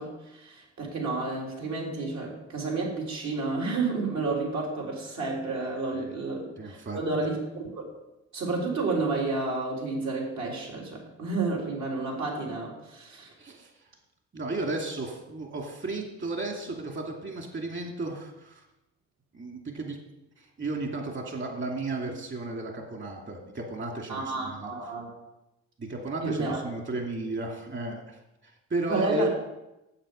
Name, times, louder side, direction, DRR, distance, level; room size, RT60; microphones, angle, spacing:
voice 1, 0.0-7.8 8.3-13.3 24.1-25.1 26.2-26.7 28.9-29.3, right 3 dB, 65° right, -2 dB, 3.8 m, -30 dB
voice 2, 6.6-7.0 13.4-13.7 14.3-18.6 19.3-20.0 20.4-24.7 25.8-29.3, right 2 dB, 40° right, 1 dB, 2.7 m, -34 dB
8.8 x 8.4 x 7.0 m, 0.94 s
cardioid pair, 90°, 30 cm